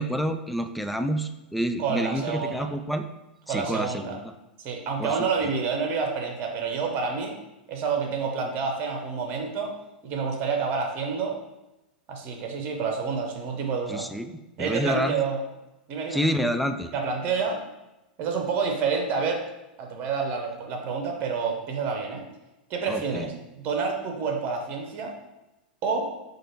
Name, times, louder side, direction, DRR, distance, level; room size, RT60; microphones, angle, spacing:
voice 1, 0.0-3.0 3.5-4.2 5.0-5.5 13.9-15.2 16.1-16.9 22.9-23.3, equal, ahead, 7 dB, 0.3 m, -28 dB
voice 2, 1.8-2.7 3.5-4.2 4.6-7.4 7.7-9.7 10.0-11.4 12.1-14.1 14.6-15.4 15.9-16.2 16.9-17.6 18.2-19.4 19.8-22.2 22.7-25.2 25.8-26.1, right 5 dB, 40° right, 3 dB, 1.0 m, -28 dB
4.6 x 2.6 x 4.5 m, 0.96 s
hypercardioid pair, 105°, 5 cm